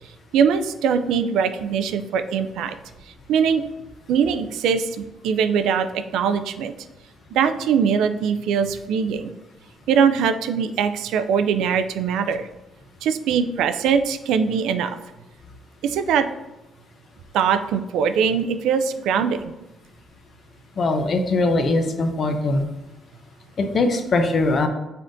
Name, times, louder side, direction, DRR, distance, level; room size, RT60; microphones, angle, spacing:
voice 1, 0.3-2.7 3.3-3.6 4.1-6.7 7.3-9.3 9.9-12.5 13.0-14.9 15.8-16.3 17.3-19.5, right 7 dB, 85° right, 9 dB, 0.3 m, -21 dB
voice 2, 20.8-22.6 23.6-24.7, left 2 dB, 50° left, 6 dB, 0.6 m, -21 dB
5.6 x 3.6 x 2.6 m, 0.98 s
cardioid pair, 90°, 0 cm